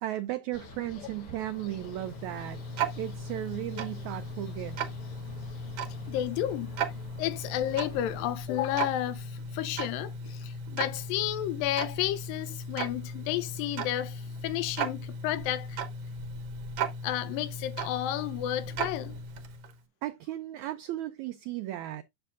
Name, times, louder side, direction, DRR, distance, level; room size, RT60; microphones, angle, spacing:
voice 1, 0.0-2.6 3.0-4.8 20.0-22.0, right 14 dB, 90° right, 1.6 m, -35 dB
sound 1, 0.5-8.3, left 3 dB, 60° left, 1.7 m, -48 dB
Tick-tock, 1.5-19.8, right 3 dB, 65° right, 1.5 m, -37 dB
voice 2, 6.1-6.8 7.2-15.8 17.0-19.2, left 13 dB, 90° left, 2.5 m, -32 dB
10.0 x 6.7 x 2.4 m
omnidirectional pair, 3.9 m